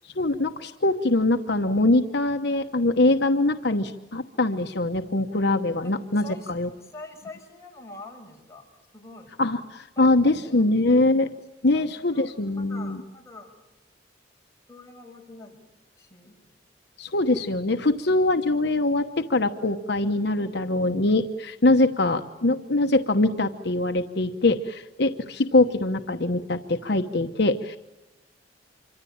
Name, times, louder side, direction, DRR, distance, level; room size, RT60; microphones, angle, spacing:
voice 1, 0.0-6.7 9.4-11.3 11.6-13.0 17.0-27.8, left 2 dB, 65° left, 6 dB, 1.0 m, -23 dB
voice 2, 5.8-8.7 8.9-9.3 10.0-10.7 11.7-13.5 14.7-15.6 16.0-16.5, left 2 dB, 15° left, 0 dB, 5.8 m, -45 dB
26.5 x 24.5 x 8.7 m, 1.1 s
head